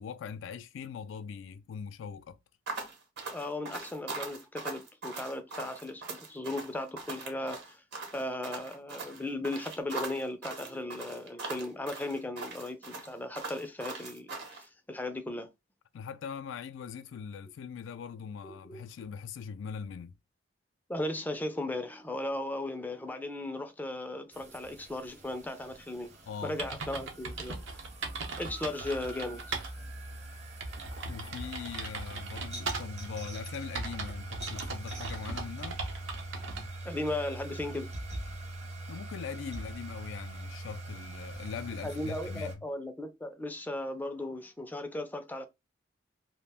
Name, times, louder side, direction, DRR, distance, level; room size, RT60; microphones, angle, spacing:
voice 1, 0.0-2.4 15.9-20.1 26.3-26.6 31.1-35.9 38.9-42.6, left 6 dB, 80° left, 0.3 m, -41 dB
sound 1, 2.7-14.6, right 3 dB, 60° right, 0.9 m, -41 dB
voice 2, 3.3-7.8 8.1-15.5 18.4-18.8 20.9-26.1 26.4-27.8 28.4-29.4 36.8-37.9 41.8-45.5, left 1 dB, 10° left, 0.4 m, -37 dB
sound 2, 24.3-42.5, right 2 dB, 35° right, 0.6 m, -43 dB
sound 3, 26.1-26.2 26.6-29.7 30.1-30.2 30.6-33.1 33.7-36.7, right 3 dB, 80° right, 0.7 m, -38 dB
2.4 x 2.1 x 3.3 m
head